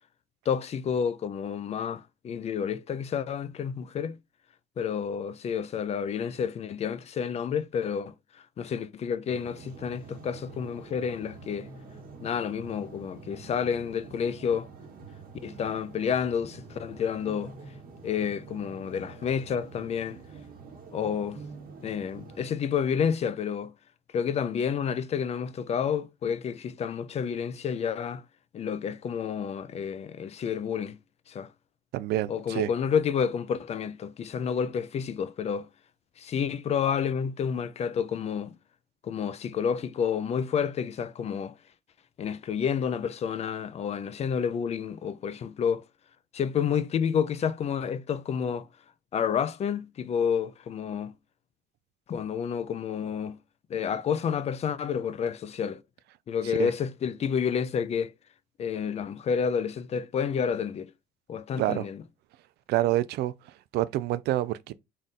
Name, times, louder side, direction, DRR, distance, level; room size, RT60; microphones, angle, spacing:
voice 1, 0.5-4.2 4.8-11.7 12.2-14.7 15.4-17.5 18.0-20.2 20.9-21.4 21.8-23.7 24.1-28.2 28.5-31.0 31.3-31.5 32.3-35.7 36.2-38.5 39.0-41.5 42.2-45.8 46.3-48.7 49.1-51.1 52.1-53.4 53.7-55.8 56.3-58.1 58.6-60.9 61.3-62.0, left 7 dB, 40° left, 0.4 m, -30 dB
sound 1, 9.3-22.5, right 4 dB, 55° right, 1.2 m, -46 dB
voice 2, 31.9-32.7 56.4-56.7 61.6-61.9 62.7-63.3 63.7-64.7, right 14 dB, 75° right, 0.4 m, -27 dB
3.8 x 2.5 x 4.0 m
cardioid pair, 110°, 17 cm